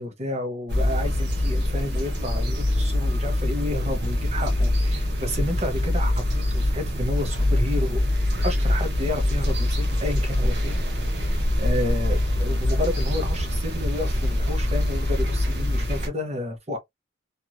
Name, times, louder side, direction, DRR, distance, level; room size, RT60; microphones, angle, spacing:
voice 1, 0.0-8.0 8.4-10.8 11.6-16.8, left 1 dB, 35° right, 0.9 m, -31 dB
sound 1, 0.7-16.1, left 1 dB, 60° right, 0.9 m, -24 dB
2.9 x 2.6 x 2.2 m
head